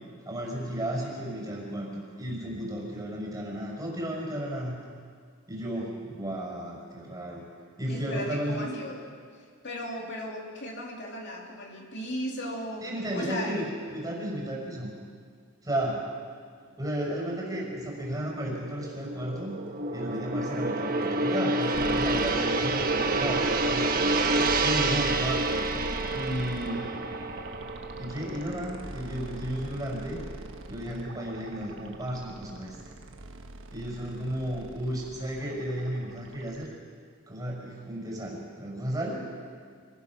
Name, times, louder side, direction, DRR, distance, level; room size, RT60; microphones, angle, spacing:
voice 1, 0.2-4.8 5.5-7.5 7.8-8.7 12.8-14.9 15.6-16.0 16.8-19.6 19.9-23.9 24.6-26.8 28.0-30.2 30.7-32.8 33.7-36.7 37.3-39.3, right 1 dB, 15° right, -2 dB, 5.2 m, -33 dB
voice 2, 7.9-9.0 9.6-13.7, left 1 dB, 55° left, -1 dB, 2.9 m, -36 dB
Gong, 17.4-29.8 30.2-30.4, right 2 dB, 40° right, 1.3 m, -29 dB
sound 1, 21.7-36.6, right 2 dB, 60° right, 1.3 m, -41 dB
25.0 x 19.0 x 6.0 m, 2.1 s
head